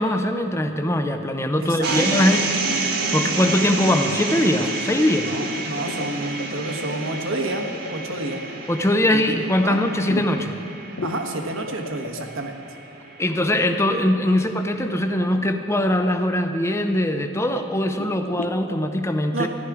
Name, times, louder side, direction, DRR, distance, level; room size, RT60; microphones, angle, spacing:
voice 1, 0.0-2.4 2.8-5.3 8.7-10.6 13.2-19.5, left 1 dB, 15° left, 7 dB, 0.6 m, -21 dB
voice 2, 1.6-2.3 5.2-8.5 9.1-9.2 9.6-9.8 11.0-12.5 19.3-19.5, right 2 dB, 75° right, 3 dB, 1.3 m, -29 dB
sound 1, 1.8-14.0, right 3 dB, 50° right, 1.4 m, -29 dB
sound 2, 1.9-2.1 2.7-3.1 3.4-3.8 4.1-4.2 5.4-8.2 10.0-10.5 11.0-12.2 13.7-15.3 18.0-18.9, left 4 dB, 85° left, 0.7 m, -35 dB
14.0 x 11.5 x 4.8 m, 2.6 s
head